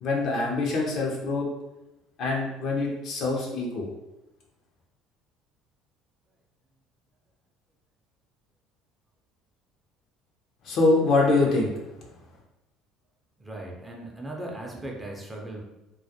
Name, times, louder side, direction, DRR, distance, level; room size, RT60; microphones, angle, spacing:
voice 1, 0.0-1.5 2.2-3.9 10.6-11.7, left 3 dB, 60° left, -1 dB, 0.6 m, -24 dB
voice 2, 13.4-15.6, right 1 dB, 15° right, -1 dB, 0.5 m, -38 dB
2.3 x 2.1 x 2.7 m, 0.97 s
supercardioid pair, 80°, 0 cm